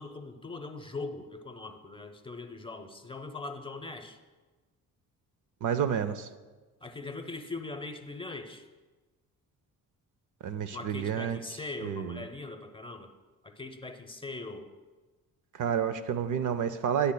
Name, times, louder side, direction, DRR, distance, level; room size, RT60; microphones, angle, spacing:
voice 1, 0.0-4.2 6.8-8.7 10.7-13.1 13.4-14.7, left 3 dB, 15° left, 7 dB, 0.7 m, -41 dB
voice 2, 5.6-6.3 10.4-11.4 11.8-12.2 15.6-17.1, right 8 dB, 55° right, 11 dB, 0.5 m, -29 dB
11.5 x 8.1 x 2.2 m, 1.3 s
cardioid pair, 70°, 36 cm